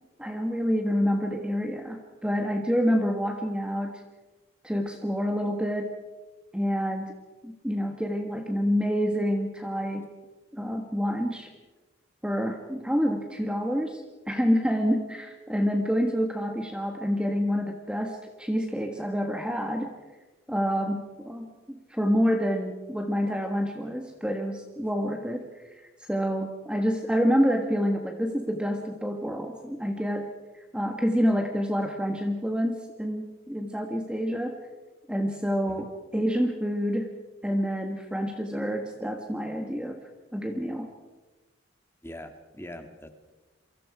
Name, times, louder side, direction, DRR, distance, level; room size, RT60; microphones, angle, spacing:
voice 1, 0.2-4.0 4.6-5.9 6.5-7.1 7.4-10.1 10.5-11.5 12.2-19.9 20.5-25.6 26.0-30.3 30.7-34.5 35.1-37.1 37.4-40.0 40.3-40.9, equal, 5° right, 3 dB, 1.4 m, -27 dB
voice 2, 42.0-43.1, left 1 dB, 10° left, 6 dB, 1.8 m, -42 dB
27.5 x 24.5 x 4.9 m, 1.2 s
head